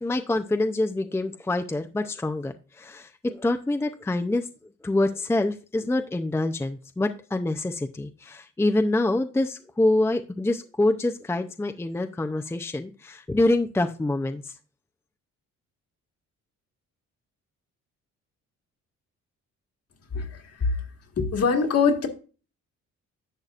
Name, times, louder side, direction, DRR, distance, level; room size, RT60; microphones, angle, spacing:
voice 1, 0.0-4.5 4.8-14.5, left 2 dB, 10° left, 6 dB, 0.5 m, -26 dB
voice 2, 20.1-20.8 21.2-22.1, left 5 dB, 55° left, 3 dB, 1.7 m, -23 dB
11.0 x 6.5 x 2.5 m, 0.35 s
cardioid pair, 90°, 30 cm